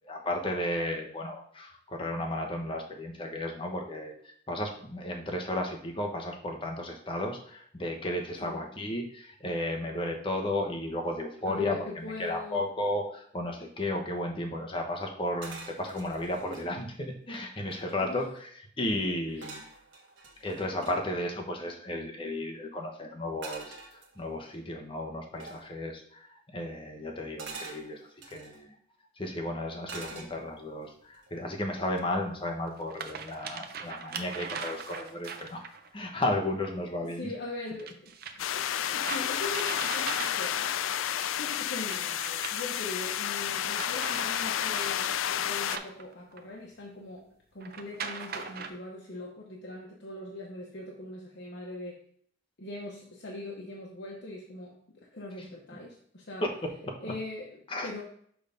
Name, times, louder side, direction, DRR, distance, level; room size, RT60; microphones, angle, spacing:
voice 1, 0.0-19.6 20.4-23.7 24.2-26.3 26.5-28.0 28.3-28.7 29.2-35.6 35.9-37.3 55.4-55.5 56.4-56.9 57.7-57.9, left 1 dB, 25° left, 1 dB, 1.0 m, -34 dB
voice 2, 11.5-12.7 18.0-18.3 19.3-19.5 30.0-30.3 37.0-41.0 41.4-47.3 47.5-52.0 52.6-54.8 55.1-56.5 57.0-58.0, left 2 dB, 60° left, -2 dB, 1.0 m, -41 dB
sound 1, 15.4-16.7 17.3-17.4 17.6-18.2 19.4-21.0 23.4-24.5 25.4-25.7 27.4-28.6 29.9-30.7 31.1-31.5, right 3 dB, 70° right, 1.5 m, -45 dB
sound 2, 30.3-30.4 32.0-32.1 32.7-35.9 37.8-40.7 41.7-42.9 43.4-46.6 47.6-48.7, right 5 dB, 50° right, 0.6 m, -41 dB
sound 3, 38.4-45.8, left 10 dB, 90° left, 0.4 m, -31 dB
6.4 x 3.5 x 5.2 m, 0.62 s
head